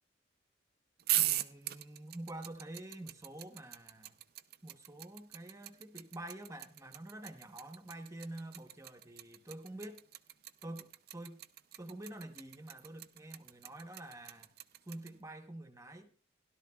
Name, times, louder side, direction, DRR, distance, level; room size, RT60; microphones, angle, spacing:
sound 1, 1.0-15.1, right 15 dB, 50° right, 0.4 m, -38 dB
voice 1, 1.1-4.2 4.6-10.0 10.6-11.4 11.8-14.5 14.8-16.1, right 1 dB, 15° right, 0.9 m, -47 dB
16.5 x 11.5 x 2.3 m
head